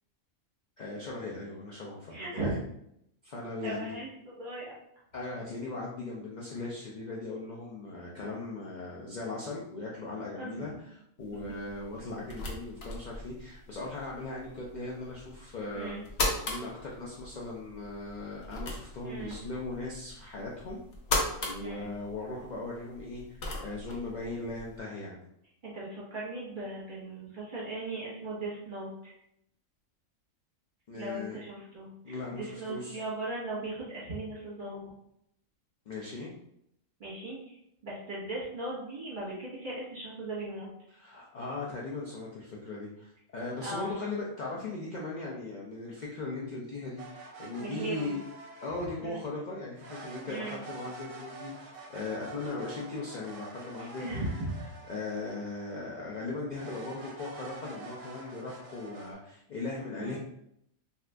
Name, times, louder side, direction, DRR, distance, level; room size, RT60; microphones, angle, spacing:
voice 1, 0.8-2.6 3.2-4.0 5.1-16.0 16.4-20.8 21.4-25.2 30.9-31.4 32.0-33.0 35.9-36.3 40.9-48.2 48.6-60.2, left 3 dB, 80° left, -4 dB, 0.4 m, -38 dB
voice 2, 2.1-2.5 3.6-4.7 10.3-10.8 15.7-16.0 19.0-19.4 21.6-21.9 25.6-29.1 30.9-34.9 37.0-37.6 37.8-40.7 43.6-44.0 47.6-48.1 49.0-49.2 50.3-50.6 54.0-54.5 60.0-60.2, right 2 dB, 40° right, -6 dB, 1.2 m, -38 dB
sound 1, 11.2-24.8, left 2 dB, 65° left, 0.9 m, -38 dB
sound 2, 47.0-49.2 49.8-56.0 56.5-59.1, right 3 dB, 70° right, 1.0 m, -47 dB
2.7 x 2.4 x 3.3 m, 0.76 s
omnidirectional pair, 1.4 m